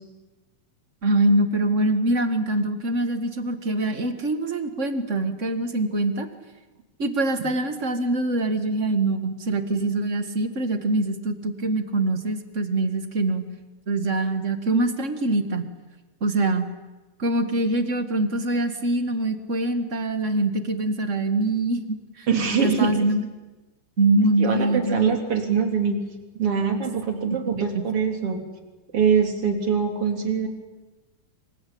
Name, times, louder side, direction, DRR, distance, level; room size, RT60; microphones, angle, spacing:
voice 1, 1.0-6.3 7.0-13.4 13.9-15.7 16.2-16.7 17.2-21.8 22.2-22.3 22.6-23.3 24.0-25.1 27.6-27.8, right 2 dB, 30° right, 8 dB, 1.8 m, -24 dB
voice 2, 22.3-22.9 24.4-26.0 26.3-28.4 28.9-30.5, right 6 dB, 45° right, 4 dB, 4.3 m, -23 dB
26.5 x 25.5 x 8.7 m, 1.1 s
omnidirectional pair, 3.6 m